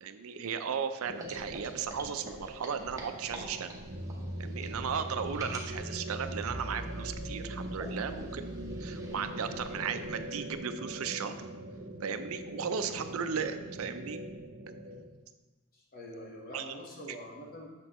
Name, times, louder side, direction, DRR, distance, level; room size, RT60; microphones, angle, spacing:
voice 1, 0.0-3.7 4.4-11.3 12.0-14.2 16.5-16.6, right 7 dB, 90° right, 9 dB, 0.4 m, -36 dB
sound 1, 1.0-15.1, right 1 dB, 50° right, 0.6 m, -43 dB
sound 2, 1.1-10.7, right 1 dB, 15° right, 0.8 m, -48 dB
sound 3, 3.8-9.3, right 1 dB, 5° left, 1.9 m, -42 dB
voice 2, 15.7-17.7, left 1 dB, 45° left, -2 dB, 1.2 m, -45 dB
6.7 x 6.1 x 3.0 m, 1.2 s
head